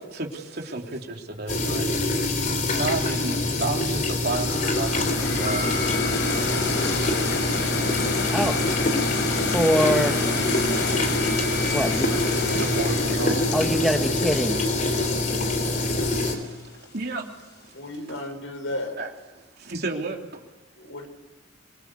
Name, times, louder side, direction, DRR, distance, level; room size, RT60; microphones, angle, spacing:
voice 1, 0.0-1.9 2.4-5.7 12.5-13.5 15.6-17.3 17.6-17.8 19.0-19.1 19.6-20.4, right 2 dB, 50° right, 1 dB, 3.4 m, -32 dB
sound 1, 1.5-16.4, left 2 dB, 40° left, 3.6 m, -25 dB
sound 2, 4.4-15.4, left 3 dB, 60° left, 4.8 m, -30 dB
Mallet percussion, 5.5-7.8, right 2 dB, 30° right, 6.6 m, -38 dB
voice 2, 9.5-10.2 11.7-12.2 13.5-14.7, equal, ahead, 4 dB, 1.3 m, -24 dB
voice 3, 17.7-19.0 20.8-21.1, left 1 dB, 80° left, 5 dB, 6.1 m, -33 dB
26.0 x 23.5 x 8.5 m, 1.2 s
head